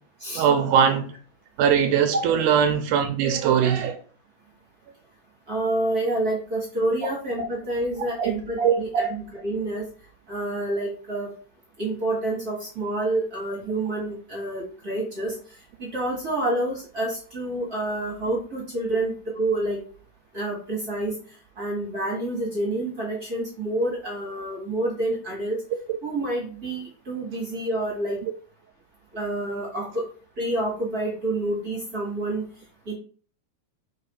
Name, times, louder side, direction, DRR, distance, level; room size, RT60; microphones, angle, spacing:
voice 1, 0.3-1.1 1.6-4.0 8.2-8.3 8.6-9.0, right 8 dB, 80° right, 1.9 m, -21 dB
voice 2, 5.5-9.8 10.3-11.3 11.8-15.3 15.8-19.8 20.3-21.1 21.6-25.6 26.0-28.2 29.1-30.0 30.4-32.5 32.9-33.0, right 1 dB, 45° right, 1.2 m, -28 dB
4.7 x 4.2 x 5.4 m
omnidirectional pair, 4.1 m